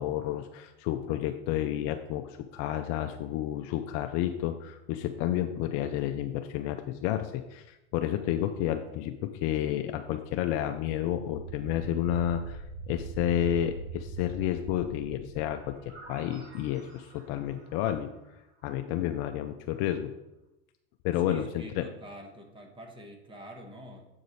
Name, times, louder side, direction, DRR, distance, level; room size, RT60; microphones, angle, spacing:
voice 1, 0.0-18.1 18.6-20.1 21.0-21.5 21.8-21.9, left 11 dB, 45° left, 7 dB, 0.5 m, -31 dB
sound 1, 10.1-16.7, right 3 dB, 35° right, 2.5 m, -43 dB
sound 2, 15.6-19.3, right 2 dB, 65° right, 2.7 m, -53 dB
voice 2, 21.2-24.1, right 1 dB, 15° right, 3 dB, 1.1 m, -45 dB
7.8 x 4.9 x 4.1 m, 0.93 s
supercardioid pair, 120°, 35 cm